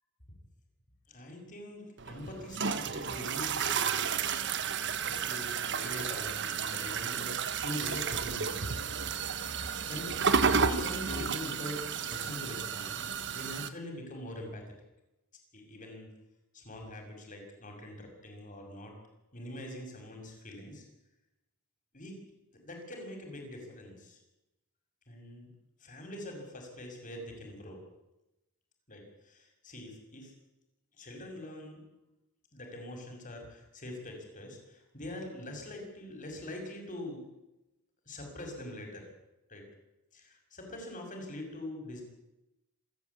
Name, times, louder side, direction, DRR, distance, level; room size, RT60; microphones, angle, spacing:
voice 1, 1.1-4.2 4.6-8.8 9.4-9.6 9.9-10.1 10.5-14.6 15.5-16.1 16.5-18.9 19.3-20.8 21.9-22.1 22.5-24.2 25.1-25.5 25.8-27.8 28.9-30.3 31.0-31.8 32.5-37.3 38.1-39.1 39.5-39.6 40.1-42.0, left 1 dB, 40° left, 2 dB, 6.5 m, -43 dB
sound 1, 2.0-13.7, right 6 dB, 55° right, 1.3 m, -32 dB
28.0 x 13.5 x 8.5 m, 0.94 s
head